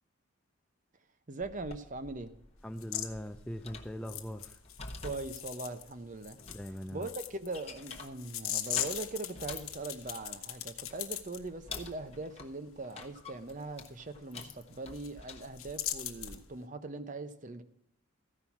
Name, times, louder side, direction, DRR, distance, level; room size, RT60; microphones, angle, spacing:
voice 1, 1.3-2.3 5.0-6.4 6.9-17.6, right 2 dB, 35° right, 0.7 m, -41 dB
turning key in lock, 1.4-16.4, left 4 dB, 30° left, 1.0 m, -49 dB
voice 2, 2.6-4.6 6.5-7.1, equal, 5° left, 0.4 m, -41 dB
sound 1, 2.8-3.1 4.0-5.9 6.2-11.4 13.8-13.9 14.4-14.5 14.7-15.1 15.4-16.4, left 12 dB, 70° left, 1.1 m, -39 dB
14.5 x 5.7 x 5.8 m
head